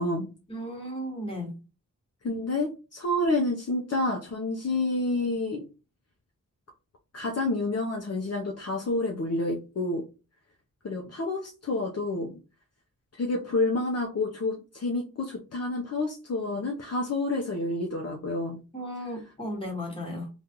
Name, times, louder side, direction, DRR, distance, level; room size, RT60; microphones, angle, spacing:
voice 1, 0.5-1.5 18.7-20.3, equal, 15° left, -1 dB, 1.3 m, -35 dB
voice 2, 2.2-5.7 7.1-10.1 10.8-12.4 13.1-18.6, left 2 dB, 50° left, 1 dB, 0.6 m, -29 dB
3.6 x 2.4 x 2.8 m, 0.32 s
wide cardioid pair, 80°, 32 cm